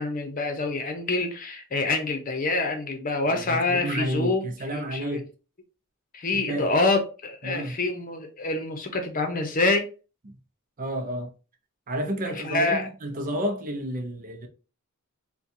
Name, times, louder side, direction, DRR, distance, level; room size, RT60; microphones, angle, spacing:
voice 1, 0.0-4.4 4.7-5.2 6.1-9.9 12.3-12.9, left 3 dB, 40° left, 0.8 m, -26 dB
voice 2, 3.3-5.3 6.3-6.7 7.4-7.8 10.3-10.4 10.8-11.3 11.9-14.5, right 1 dB, 40° right, 0.6 m, -31 dB
4.2 x 2.2 x 2.6 m
head